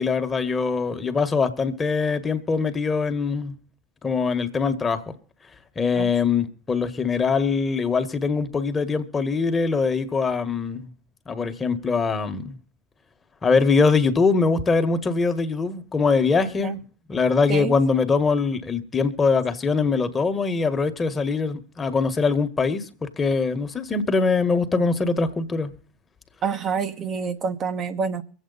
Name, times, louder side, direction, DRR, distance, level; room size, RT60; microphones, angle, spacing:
voice 1, 0.0-3.5 4.0-5.1 5.7-10.9 11.3-12.6 13.4-16.8 17.1-25.7, left 4 dB, 25° left, 1.5 m, -22 dB
voice 2, 26.4-28.2, right 6 dB, 40° right, 1.2 m, -27 dB
24.0 x 8.2 x 4.1 m
hypercardioid pair, 80°, 0 cm